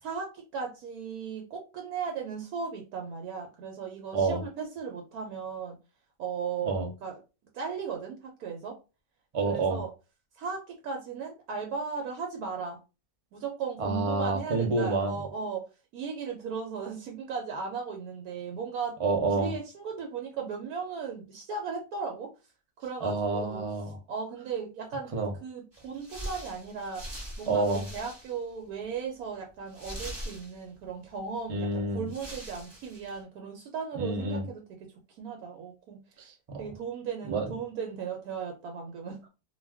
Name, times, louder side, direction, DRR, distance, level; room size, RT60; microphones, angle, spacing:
voice 1, 0.0-5.8 6.2-7.2 7.5-8.7 9.4-9.9 10.3-12.8 13.3-15.6 15.9-19.0 19.4-22.3 22.8-23.6 24.1-25.1 25.4-27.0 27.4-36.3 36.6-39.2, right 5 dB, 80° right, 1.1 m, -36 dB
voice 2, 9.3-9.8 13.8-15.2 19.0-19.5 23.0-24.0 25.1-25.3 27.5-27.8 31.5-32.1 34.0-34.5 36.2-36.6 37.3-37.5, right 3 dB, 55° right, 0.3 m, -28 dB
sound 1, 25.7-28.5 28.8-28.9 29.7-30.9 31.7-31.8 32.1-33.2, equal, 15° right, 1.1 m, -42 dB
2.4 x 2.3 x 3.3 m
omnidirectional pair, 1.6 m